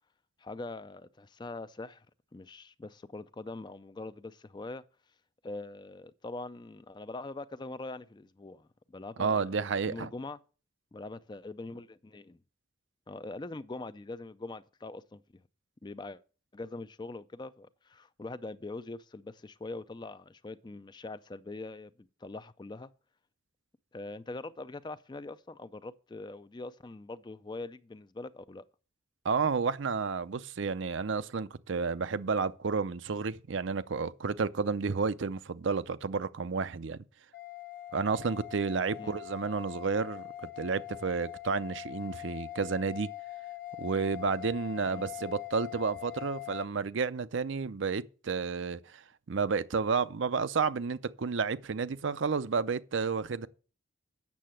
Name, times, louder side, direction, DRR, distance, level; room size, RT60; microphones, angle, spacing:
voice 1, 0.4-2.1 2.3-4.8 5.4-10.4 10.9-12.4 13.1-15.2 15.8-16.2 16.5-22.9 23.9-28.6 39.0-39.1 44.8-45.0, left 2 dB, 20° left, 0.4 m, -43 dB
voice 2, 9.2-10.1 29.2-37.0 37.9-43.1 43.8-49.0 49.3-53.5, right 5 dB, 70° right, 0.5 m, -31 dB
sound 1, 37.3-46.7, left 15 dB, 45° left, 0.9 m, -43 dB
8.4 x 6.7 x 7.5 m
head